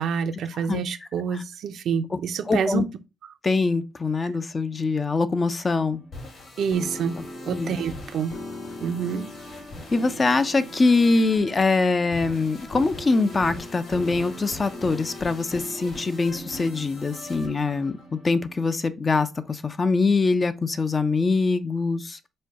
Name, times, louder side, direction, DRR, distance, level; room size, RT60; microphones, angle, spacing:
voice 1, 0.0-2.9 6.6-7.2 7.4-8.3 8.8-9.3, right 7 dB, 70° right, 0.5 m, -27 dB
voice 2, 2.5-2.8 3.4-6.0 7.5-7.7 9.9-22.3, left 3 dB, 30° left, 0.5 m, -23 dB
sound 1, 5.9-18.7, left 1 dB, 55° left, 2.4 m, -39 dB
4.3 x 2.2 x 4.7 m
cardioid pair, 90°, 0 cm